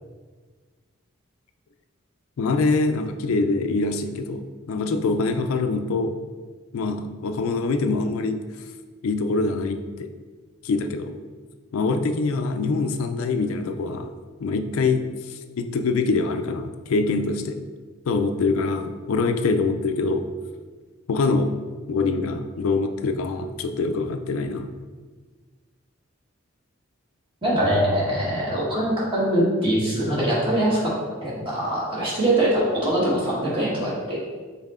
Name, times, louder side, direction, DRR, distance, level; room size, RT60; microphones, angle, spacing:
voice 1, 2.4-6.2 6.7-8.4 9.0-10.1 10.6-11.1 11.7-14.1 14.4-17.6 18.1-20.3 21.1-21.5 21.9-24.7, left 3 dB, 85° left, 7 dB, 0.3 m, -24 dB
voice 2, 27.4-30.9 31.2-34.2, right 1 dB, 25° right, -7 dB, 1.3 m, -23 dB
5.4 x 4.0 x 2.4 m, 1.4 s
head